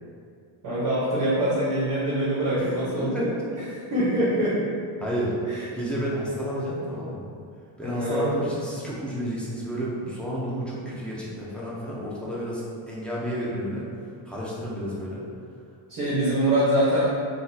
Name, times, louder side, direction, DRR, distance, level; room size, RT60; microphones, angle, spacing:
voice 1, 0.6-3.3 3.7-4.6 5.5-5.6 7.8-8.5 15.9-17.0, right 1 dB, 35° right, -12 dB, 1.1 m, -24 dB
voice 2, 2.6-3.4 5.0-5.4 5.7-7.3 7.8-13.9 14.3-15.2, equal, ahead, -7 dB, 0.4 m, -31 dB
3.9 x 2.3 x 2.7 m, 2.3 s
cardioid pair, 135°, 50 cm